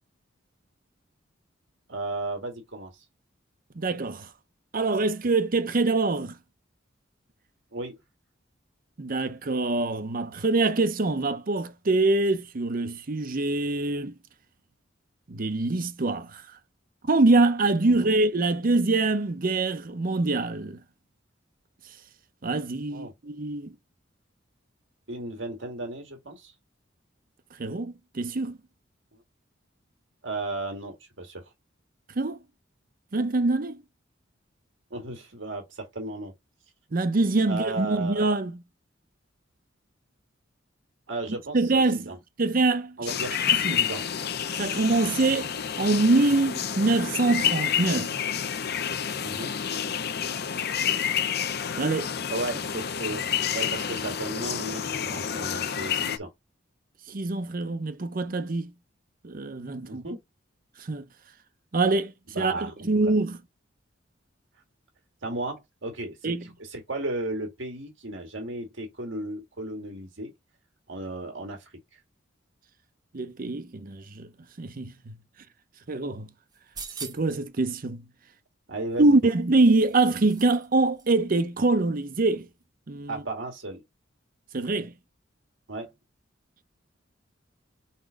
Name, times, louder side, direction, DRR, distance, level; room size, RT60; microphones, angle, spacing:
voice 1, 1.9-3.0 7.7-8.0 17.9-18.1 22.9-23.1 25.1-26.5 29.1-29.2 30.2-31.4 34.9-36.3 37.4-38.3 41.1-42.2 43.0-44.1 49.2-49.6 52.3-53.2 53.5-56.3 59.9-60.2 62.3-63.1 65.2-66.3 66.6-70.3 70.9-71.7 78.7-79.2 83.1-83.8 85.7-85.9, right 2 dB, 70° right, 1.9 m, -35 dB
voice 2, 3.8-4.3 4.7-6.4 9.0-14.1 15.3-16.4 17.1-20.8 22.4-23.7 27.6-28.6 32.2-32.4 33.1-33.8 36.9-38.5 41.5-42.1 42.4-43.0 43.6-43.9 44.6-45.5 45.8-48.1 51.8-52.1 57.1-58.7 59.2-60.0 60.8-61.0 61.7-63.4 66.2-66.4 73.1-74.3 74.6-75.2 75.9-76.3 77.0-78.0 79.0-82.5 82.9-83.2 84.5-84.9, right 2 dB, 45° right, 0.7 m, -24 dB
sound 1, 43.1-56.2, left 8 dB, 55° left, 0.7 m, -29 dB
sound 2, 76.5-77.4 78.9-80.7 81.0-81.1, right 5 dB, 20° right, 1.2 m, -43 dB
4.5 x 4.2 x 5.1 m
head